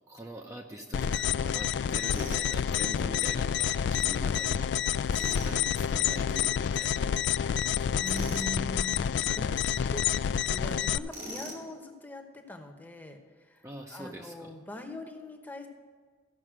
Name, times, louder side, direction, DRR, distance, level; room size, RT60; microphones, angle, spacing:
voice 1, 0.1-4.7 5.4-7.1 7.8-8.2 9.3-9.5 13.6-14.5, right 1 dB, 20° right, 1 dB, 0.6 m, -44 dB
sound 1, 0.9-11.0, left 8 dB, 70° left, 0.3 m, -28 dB
Tools, 2.1-2.5 5.1-5.5 8.0-8.5 11.1-11.7, equal, 75° right, 2.7 m, -40 dB
voice 2, 7.3-10.0 10.4-15.7, left 1 dB, 10° left, 4 dB, 1.0 m, -42 dB
14.0 x 5.4 x 6.2 m, 1.5 s
head